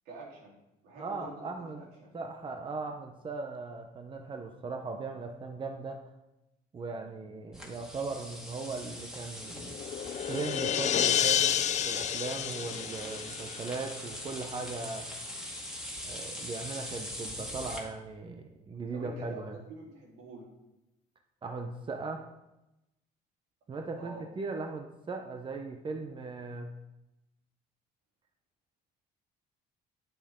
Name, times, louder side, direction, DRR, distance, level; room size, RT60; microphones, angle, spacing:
voice 1, 0.1-2.2 18.9-19.4 19.7-20.5 24.0-24.2, right 2 dB, 85° right, -4 dB, 3.9 m, -47 dB
voice 2, 1.0-1.8 2.1-6.0 6.7-9.8 10.3-11.6 11.9-15.1 16.0-19.6 21.4-22.3 23.7-26.7, right 3 dB, 30° right, 4 dB, 1.0 m, -38 dB
sound 1, 7.5-17.8, equal, 5° right, 2.2 m, -42 dB
sound 2, 9.5-14.1, left 10 dB, 45° left, 0.5 m, -30 dB
9.6 x 9.1 x 3.8 m, 0.93 s
cardioid pair, 110°, 17 cm